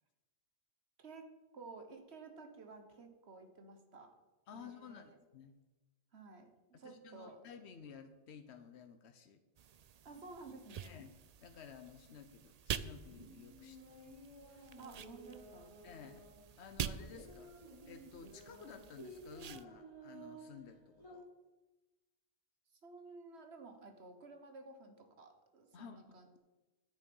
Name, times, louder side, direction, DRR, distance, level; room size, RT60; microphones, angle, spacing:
voice 1, 1.5-4.2 4.5-5.2 6.1-7.4 10.0-11.0 14.8-15.7 22.8-26.4, right 3 dB, 80° right, 6 dB, 1.5 m, -54 dB
voice 2, 4.5-5.5 6.7-9.4 10.8-11.1 11.4-14.1 14.5-14.8 15.8-16.2 16.6-17.6 17.8-21.3 25.7-26.0, left 6 dB, 85° left, 7 dB, 1.1 m, -54 dB
sound 1, 9.6-19.6, right 8 dB, 55° right, 0.5 m, -47 dB
sound 2, 12.7-21.2, right 1 dB, 30° right, 3.1 m, -55 dB
9.8 x 8.9 x 5.4 m, 1.1 s
omnidirectional pair, 1.1 m